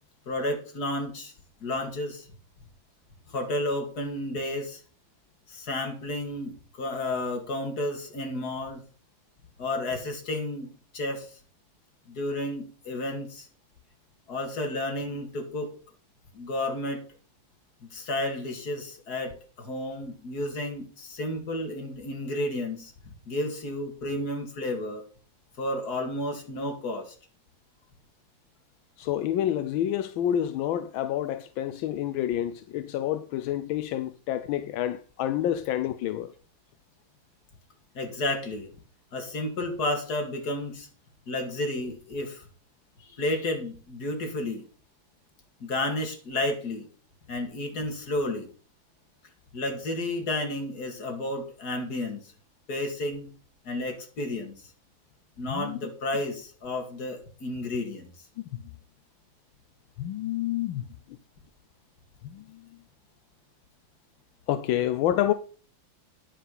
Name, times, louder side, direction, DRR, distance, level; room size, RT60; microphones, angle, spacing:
voice 1, 0.3-1.3 1.6-2.3 3.3-4.8 5.5-8.8 9.6-11.4 12.1-13.5 14.3-15.7 16.3-17.0 17.8-22.9 23.3-25.0 25.6-27.1 37.9-38.7 39.1-40.9 41.3-42.4 43.0-44.6 45.6-46.9 47.3-48.5 49.5-52.3 52.7-53.3 53.6-54.7 55.4-58.1, left 1 dB, 55° left, 2.7 m, -32 dB
voice 2, 29.0-36.3 55.5-55.8 58.5-58.6 60.0-60.8 62.2-62.6 64.5-65.3, left 11 dB, 85° left, 1.4 m, -28 dB
10.0 x 6.9 x 5.6 m
omnidirectional pair, 2.1 m